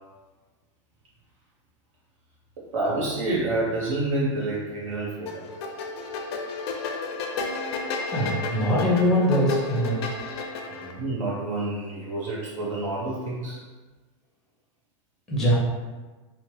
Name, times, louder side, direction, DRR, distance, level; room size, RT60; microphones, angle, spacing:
voice 1, 2.7-5.4 10.7-13.6, right 2 dB, 80° right, -7 dB, 0.8 m, -28 dB
sound 1, 5.3-10.9, left 3 dB, 55° left, 0.4 m, -32 dB
voice 2, 8.1-10.0 15.3-15.5, equal, ahead, -6 dB, 0.5 m, -22 dB
2.8 x 2.1 x 3.1 m, 1.3 s
supercardioid pair, 170°, 16 cm